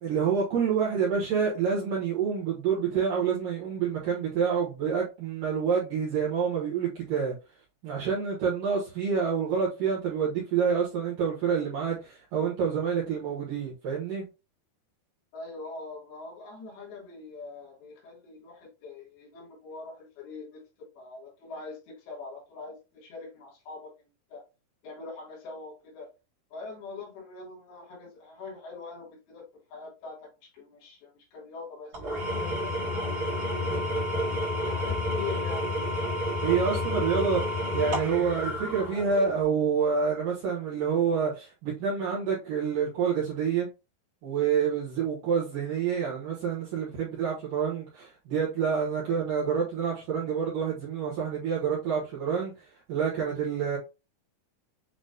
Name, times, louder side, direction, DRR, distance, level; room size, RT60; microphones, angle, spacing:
voice 1, 0.0-7.4 7.8-14.2 36.4-43.7 44.2-53.8, right 6 dB, 65° right, 2.5 m, -28 dB
voice 2, 15.3-24.4 24.8-26.1 26.5-34.0 34.5-35.7, left 4 dB, 70° left, 3.3 m, -43 dB
Engine / Tools, 31.9-39.4, left 1 dB, 45° right, 1.8 m, -30 dB
7.8 x 3.0 x 2.2 m
omnidirectional pair, 4.7 m